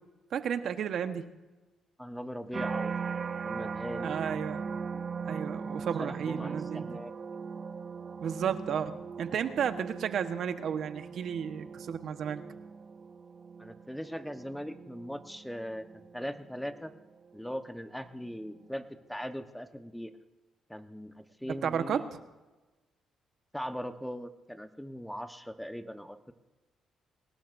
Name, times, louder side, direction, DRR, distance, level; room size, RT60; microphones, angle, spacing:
voice 1, 0.3-1.2 4.0-6.9 8.2-8.9 9.2-12.4 21.6-22.2, right 8 dB, 65° right, 8 dB, 1.2 m, -33 dB
voice 2, 2.0-2.9 3.4-4.2 6.0-7.1 13.6-16.9 17.3-20.1 20.7-22.1 23.5-26.3, equal, 5° left, 8 dB, 1.1 m, -40 dB
sound 1, 2.5-17.7 18.2-18.7, right 5 dB, 40° right, 0.6 m, -40 dB
23.5 x 19.0 x 2.7 m, 1.1 s
cardioid pair, 90°, 0 cm